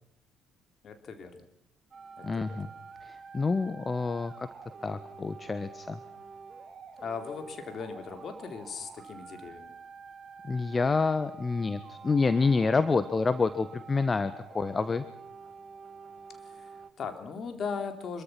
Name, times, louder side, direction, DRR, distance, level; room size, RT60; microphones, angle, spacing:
voice 1, 0.8-1.4 2.2-2.6 7.0-9.7 16.4-18.2, left 5 dB, 50° left, 6 dB, 3.9 m, -38 dB
sound 1, 1.9-16.9, right 5 dB, 45° right, 2.2 m, -48 dB
voice 2, 2.2-2.7 3.0-4.5 4.8-6.0 10.4-15.0, left 4 dB, 30° left, 13 dB, 1.3 m, -28 dB
26.0 x 23.0 x 6.0 m, 0.75 s
hypercardioid pair, 50°, 0 cm